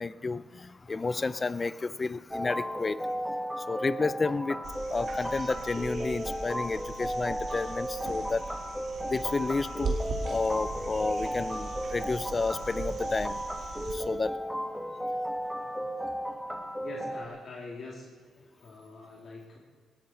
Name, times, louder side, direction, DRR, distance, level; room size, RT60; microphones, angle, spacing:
voice 1, 0.0-3.0 3.6-8.4 9.1-10.0 10.3-13.4 13.9-14.4, left 3 dB, 30° left, 16 dB, 0.4 m, -31 dB
sound 1, 2.3-17.3, equal, ahead, 1.1 m, -35 dB
sound 2, 4.6-14.0 16.1-16.2, right 3 dB, 55° right, 2.7 m, -39 dB
voice 2, 16.8-18.1 18.6-19.6, left 3 dB, 50° left, -2 dB, 2.7 m, -44 dB
18.0 x 15.5 x 4.4 m, 1.5 s
cardioid pair, 90°, 0 cm